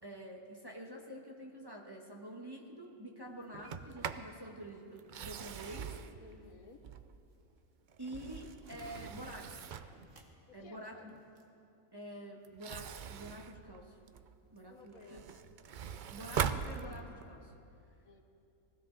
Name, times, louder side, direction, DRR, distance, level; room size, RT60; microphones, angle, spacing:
voice 1, 0.0-5.9 8.0-9.7 10.5-11.2 11.9-13.9 14.5-15.2 16.1-17.5, right 1 dB, 20° right, -1 dB, 1.2 m, -47 dB
Sliding door, 3.5-4.3 5.0-7.3 7.9-10.0 12.4-14.4 14.9-17.4, right 7 dB, 80° right, 0.4 m, -41 dB
voice 2, 6.2-6.9 10.5-11.1 14.7-15.4 18.0-18.2, left 4 dB, 85° left, 4 dB, 1.6 m, -56 dB
sound 1, 6.3-7.0 7.3-7.6 7.9-11.4, right 3 dB, 60° right, 1.6 m, -60 dB
20.0 x 16.0 x 3.9 m, 2.6 s
omnidirectional pair, 1.5 m